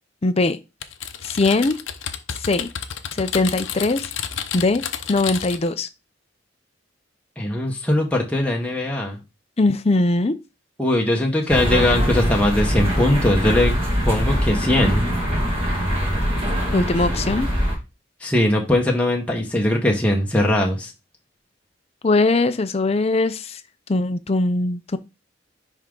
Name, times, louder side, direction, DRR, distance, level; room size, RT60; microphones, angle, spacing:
voice 1, 0.2-0.6 1.2-1.7 2.4-2.7 3.1-4.1 4.5-4.8 5.1-5.9 9.6-10.3 16.7-17.5 22.0-23.6 23.9-25.0, left 2 dB, 30° left, 0.5 m, -20 dB
Typing, 0.8-5.7, left 8 dB, 70° left, 0.8 m, -31 dB
voice 2, 7.4-9.2 10.8-13.7 14.0-15.0 18.2-20.9, left 1 dB, 5° left, 1.0 m, -20 dB
sound 1, 11.5-17.7, equal, 30° right, 2.3 m, -22 dB
10.0 x 3.6 x 3.7 m
head